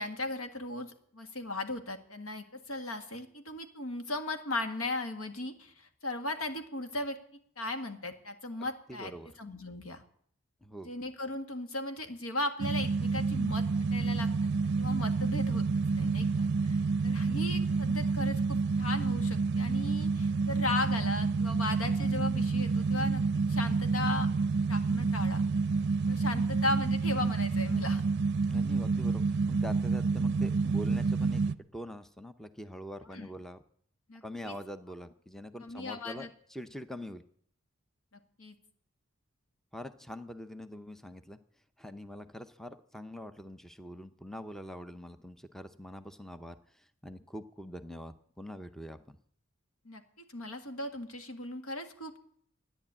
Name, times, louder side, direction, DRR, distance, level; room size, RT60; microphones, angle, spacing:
voice 1, 0.0-7.2 7.6-9.1 9.4-10.0 10.8-13.6 13.9-14.3 14.8-15.6 15.9-23.2 23.5-24.3 24.7-25.4 26.1-28.0 33.1-33.3 34.1-34.5 35.6-36.3 38.4-38.6 49.9-50.0 50.3-52.2, left 2 dB, 80° left, 6 dB, 1.8 m, -37 dB
voice 2, 8.9-9.3 10.6-10.9 28.5-33.6 34.2-37.2 39.7-41.4 41.8-49.2, equal, ahead, 10 dB, 0.6 m, -44 dB
sound 1, 12.6-31.5, right 4 dB, 55° right, 0.5 m, -29 dB
13.5 x 9.9 x 8.7 m, 0.63 s
head